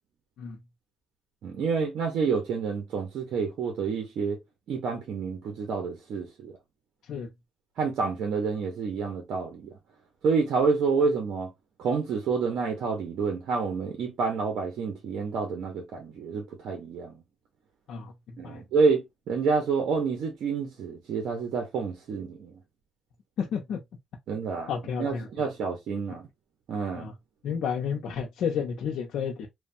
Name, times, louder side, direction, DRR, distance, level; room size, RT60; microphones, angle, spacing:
voice 1, 1.4-4.4 4.7-6.5 7.8-9.8 10.2-11.5 11.8-17.1 18.4-22.6 24.3-24.7 25.0-26.3 26.7-27.1, right 5 dB, 75° right, 0.7 m, -28 dB
voice 2, 17.9-18.6 23.4-23.8 24.7-25.3 26.9-27.1 27.4-29.5, left 7 dB, 75° left, 0.5 m, -31 dB
3.1 x 2.2 x 2.6 m
cardioid pair, 90°, 0 cm